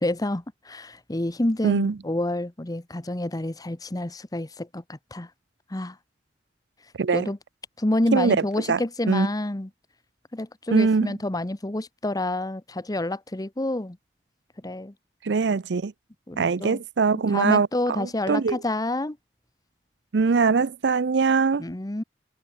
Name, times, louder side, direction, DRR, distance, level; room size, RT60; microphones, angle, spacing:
voice 1, 0.0-5.3 5.7-6.0 7.1-7.4 7.8-9.7 10.3-14.0 14.6-14.9 16.3-16.8 17.1-19.2 21.6-22.0, left 1 dB, 20° left, 1.0 m, -28 dB
voice 2, 1.6-1.9 7.0-7.3 8.1-8.8 9.1-9.3 10.7-11.1 15.2-15.9 16.4-17.7 18.0-18.6 20.1-21.6, right 4 dB, 85° right, 0.5 m, -22 dB
head